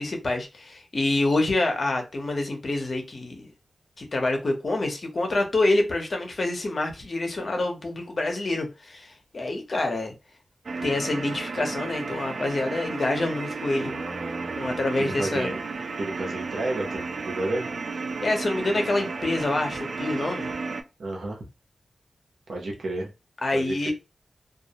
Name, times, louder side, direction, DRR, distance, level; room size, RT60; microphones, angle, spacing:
voice 1, 0.0-3.4 4.0-10.1 10.8-13.9 14.6-15.5 18.2-20.5 23.4-23.9, left 2 dB, 55° left, 0.7 m, -26 dB
sound 1, 10.7-20.8, right 4 dB, 65° right, 0.3 m, -33 dB
voice 2, 13.8-15.6 16.0-17.7 21.0-21.4 22.5-23.1 23.5-23.9, right 2 dB, 90° right, 0.7 m, -32 dB
2.3 x 2.0 x 2.7 m
wide cardioid pair, 75°, 0 cm